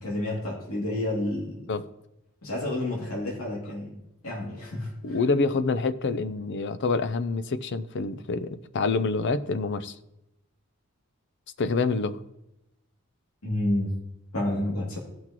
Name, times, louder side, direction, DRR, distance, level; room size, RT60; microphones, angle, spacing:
voice 1, 0.0-1.7 2.4-5.2 13.4-13.9 14.3-15.0, left 1 dB, 70° left, 2.5 m, -30 dB
voice 2, 5.0-10.0 11.6-12.2, left 3 dB, 55° left, 0.5 m, -27 dB
16.0 x 6.0 x 2.9 m
head